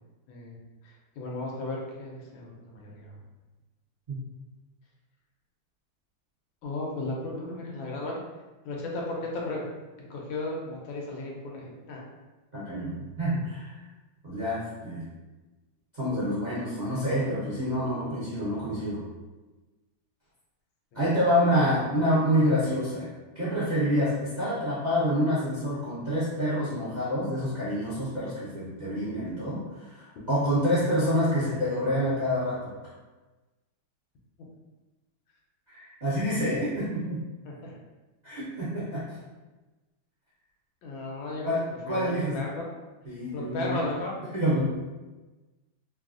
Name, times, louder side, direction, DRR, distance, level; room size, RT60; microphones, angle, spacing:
voice 1, 0.3-3.2 6.6-8.2 8.6-9.7 10.0-12.0 20.9-21.1 37.4-37.8 40.8-41.5 41.9-42.6 43.3-44.2, left 2 dB, 85° left, -2 dB, 1.5 m, -35 dB
voice 2, 12.5-13.8 14.2-15.0 15.9-19.0 20.9-23.1 23.3-32.7 35.7-37.2 38.2-39.2 41.4-42.4 43.0-43.8 44.3-44.6, equal, 60° right, -11 dB, 0.4 m, -27 dB
3.4 x 2.3 x 2.4 m, 1.2 s
omnidirectional pair, 2.1 m